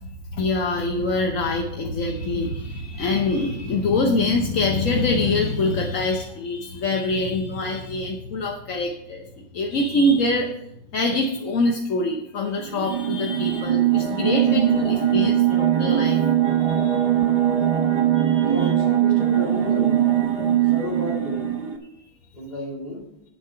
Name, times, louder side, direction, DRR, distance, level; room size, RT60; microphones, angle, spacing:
voice 1, 0.0-9.3 9.5-10.6 10.9-16.2 16.5-17.0 18.1-18.7 20.3-20.6, left 2 dB, 50° left, 1 dB, 1.1 m, -24 dB
sound 1, 12.6-21.8, right 11 dB, 40° right, 1.0 m, -21 dB
voice 2, 18.4-20.0 20.7-21.5 22.3-23.1, left 1 dB, 20° left, -2 dB, 2.4 m, -32 dB
9.4 x 7.6 x 5.6 m, 0.80 s
omnidirectional pair, 2.1 m